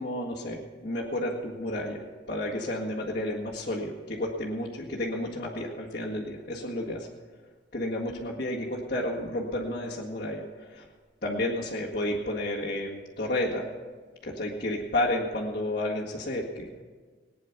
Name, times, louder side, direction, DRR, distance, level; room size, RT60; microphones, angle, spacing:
voice 1, 0.0-2.0 2.3-7.1 7.7-10.8 11.2-13.7 14.2-16.7, left 1 dB, 50° left, -7 dB, 1.9 m, -31 dB
19.5 x 9.8 x 5.9 m, 1.5 s
head